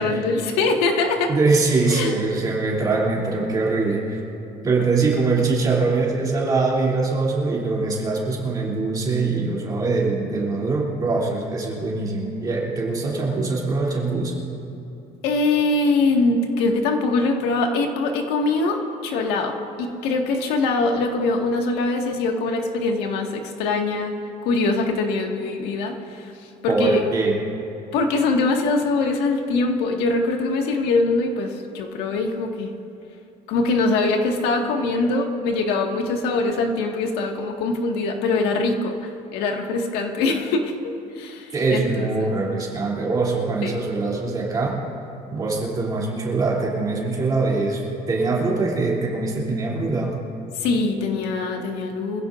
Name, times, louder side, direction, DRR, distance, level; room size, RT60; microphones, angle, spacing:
voice 1, 0.0-1.3 1.9-2.2 15.2-24.1 24.4-27.0 27.9-32.7 33.5-42.3 43.6-43.8 50.5-52.2, left 3 dB, 85° left, 2 dB, 1.9 m, -23 dB
voice 2, 1.3-4.2 4.6-14.4 26.7-27.4 41.5-44.8 45.3-50.2, right 3 dB, 25° right, -4 dB, 3.1 m, -23 dB
25.5 x 16.0 x 2.6 m, 2.9 s
cardioid pair, 170°, 16 cm